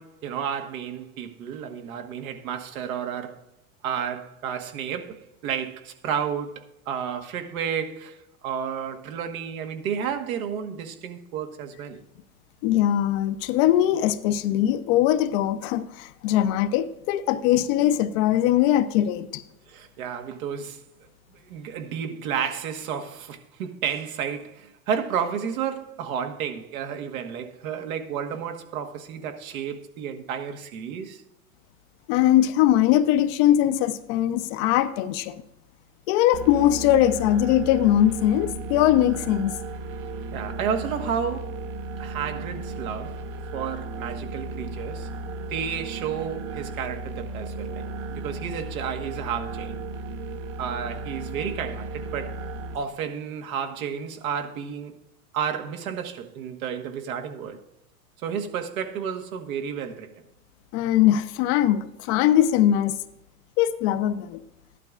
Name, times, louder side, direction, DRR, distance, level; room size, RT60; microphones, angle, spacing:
voice 1, 0.0-3.4 3.8-12.0 19.7-20.8 21.3-31.2 40.3-41.6 42.0-43.2 43.5-45.1 45.5-49.8 50.6-52.4 52.7-54.9 55.3-57.6 58.2-60.1, right 7 dB, 65° right, 1.5 m, -31 dB
voice 2, 12.6-19.4 32.1-35.4 36.1-39.5 60.7-63.0 63.6-64.4, left 12 dB, 45° left, 0.7 m, -21 dB
sound 1, 36.3-52.8, right 3 dB, 45° right, 1.0 m, -35 dB
13.0 x 11.5 x 2.5 m
hypercardioid pair, 115°, 44 cm